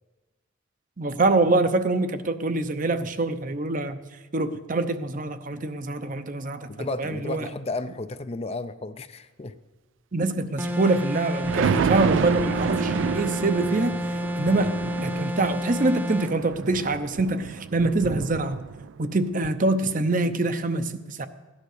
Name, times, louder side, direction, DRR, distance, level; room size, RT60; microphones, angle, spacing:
voice 1, 1.0-4.0 4.3-6.7 7.0-7.5 10.1-13.9 14.4-18.6 19.0-21.3, right 2 dB, 40° right, 10 dB, 0.7 m, -25 dB
voice 2, 6.7-9.6 11.6-11.9, left 3 dB, 30° left, 11 dB, 0.5 m, -33 dB
sound 1, 10.6-16.4, left 1 dB, 10° right, 0.9 m, -30 dB
Thunder, 10.7-19.0 19.4-19.5, right 6 dB, 65° right, 0.3 m, -30 dB
16.5 x 10.5 x 6.6 m, 1.2 s
head